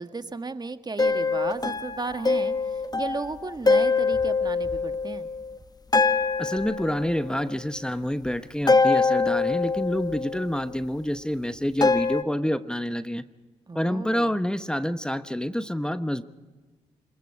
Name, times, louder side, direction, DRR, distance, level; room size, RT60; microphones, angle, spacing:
voice 1, 0.0-5.3 13.7-14.3, right 3 dB, 30° right, 9 dB, 1.5 m, -35 dB
sound 1, 1.0-5.6 5.9-7.5 8.7-10.7 11.8-12.2, left 4 dB, 25° left, 1.3 m, -24 dB
voice 2, 6.4-13.2 13.7-16.2, equal, 5° left, 12 dB, 1.0 m, -27 dB
26.0 x 22.0 x 4.8 m, 1.3 s
hypercardioid pair, 40°, 15 cm